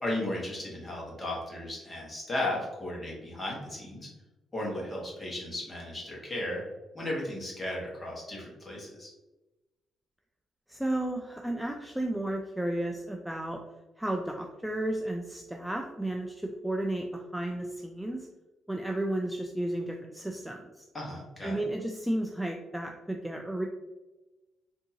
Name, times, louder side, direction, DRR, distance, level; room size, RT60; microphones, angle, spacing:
voice 1, 0.0-4.1 4.5-6.6 6.9-9.1 20.9-21.6, left 1 dB, 25° left, -3 dB, 1.4 m, -35 dB
voice 2, 10.7-13.6 14.0-18.3 18.7-20.8 21.4-23.7, right 1 dB, 5° right, 2 dB, 0.3 m, -33 dB
3.6 x 2.7 x 2.7 m, 1.1 s
cardioid pair, 90°, 0 cm